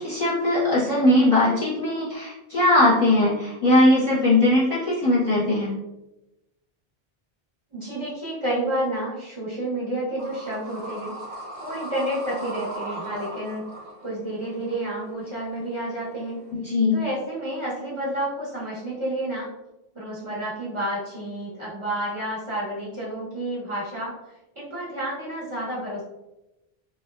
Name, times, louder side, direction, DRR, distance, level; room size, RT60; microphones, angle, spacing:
voice 1, 0.0-5.7 16.5-17.0, left 1 dB, 35° left, -9 dB, 0.7 m, -20 dB
voice 2, 7.7-11.2 11.6-13.6 14.0-16.5 16.9-19.5 19.9-24.2 24.6-26.0, right 1 dB, 35° right, -9 dB, 0.7 m, -30 dB
sound 1, 10.2-16.5, right 1 dB, 80° right, 1.0 m, -38 dB
2.7 x 2.0 x 2.2 m, 0.98 s
omnidirectional pair, 1.1 m